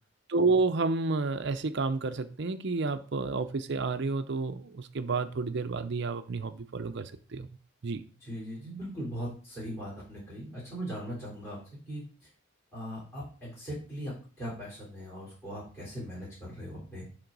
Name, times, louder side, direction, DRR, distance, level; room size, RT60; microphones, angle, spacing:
voice 1, 0.3-7.5 7.8-8.0, right 3 dB, 55° right, 0.5 m, -30 dB
voice 2, 8.2-11.6 11.9-12.3 12.7-17.1, equal, 10° left, 3.7 m, -39 dB
10.5 x 3.8 x 3.9 m
head